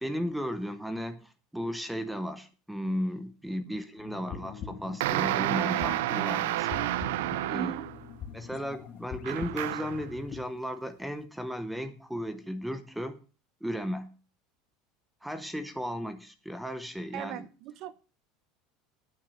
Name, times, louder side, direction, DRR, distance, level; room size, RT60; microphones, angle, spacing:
voice 1, 0.0-7.0 7.5-7.7 8.3-13.2 13.6-14.1 15.2-17.5, equal, 5° right, 11 dB, 0.8 m, -35 dB
sound 1, 4.0-10.5, left 7 dB, 40° left, 1.8 m, -43 dB
sound 2, 5.0-8.0 9.2-10.0, right 16 dB, 85° right, 0.5 m, -30 dB
voice 2, 7.5-7.9 17.1-18.0, right 13 dB, 55° right, 16 dB, 0.7 m, -38 dB
9.8 x 9.2 x 5.6 m, 0.36 s
supercardioid pair, 135°, 0 cm